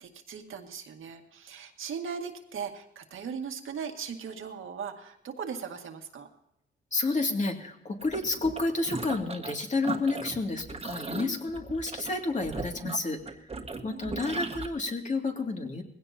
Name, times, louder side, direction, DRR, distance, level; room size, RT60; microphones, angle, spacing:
voice 1, 0.0-6.3 13.8-14.3, right 6 dB, 85° right, 4 dB, 2.0 m, -39 dB
voice 2, 6.9-13.2 13.8-15.8, left 3 dB, 35° left, 3 dB, 2.5 m, -30 dB
sound 1, 8.0-9.5 9.8-14.7, right 3 dB, 30° right, 1.6 m, -37 dB
20.5 x 16.5 x 2.8 m, 0.83 s
cardioid pair, 110°, 20 cm